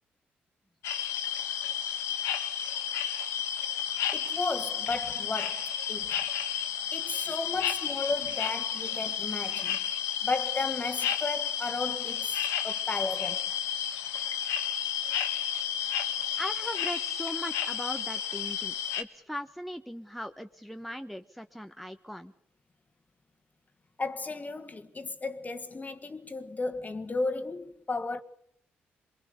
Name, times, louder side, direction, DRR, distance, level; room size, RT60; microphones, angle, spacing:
sound 1, 0.8-19.0, left 9 dB, 80° left, 1.3 m, -32 dB
voice 1, 4.1-6.2 6.9-9.8 10.2-12.4 12.6-13.5 24.0-28.2, left 3 dB, 35° left, 1.8 m, -34 dB
voice 2, 16.4-22.3, equal, ahead, 1.1 m, -39 dB
23.5 x 22.0 x 6.9 m
hypercardioid pair, 45°, 5 cm